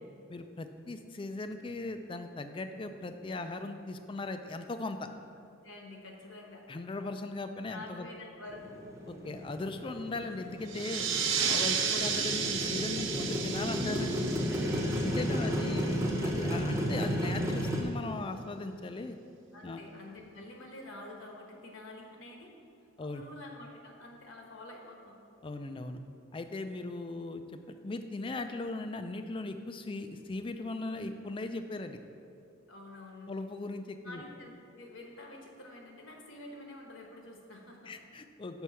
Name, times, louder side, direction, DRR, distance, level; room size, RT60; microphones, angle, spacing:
voice 1, 0.3-5.1 6.7-8.1 9.1-11.1 11.4-14.2 15.0-19.2 19.6-19.8 23.0-23.2 25.4-26.0 26.3-32.0 33.3-34.2 37.9-38.6, left 2 dB, 25° left, 8 dB, 0.3 m, -38 dB
voice 2, 5.6-6.6 7.7-8.8 11.7-12.0 15.3-15.8 19.5-22.5 23.0-25.2 32.7-33.5 34.0-37.9, left 2 dB, 70° left, 1 dB, 1.2 m, -48 dB
Motorcycle, 8.5-17.8, equal, 15° right, 0.7 m, -33 dB
sound 1, 10.7-15.9, right 6 dB, 65° right, 0.7 m, -33 dB
6.2 x 5.5 x 5.6 m, 2.5 s
head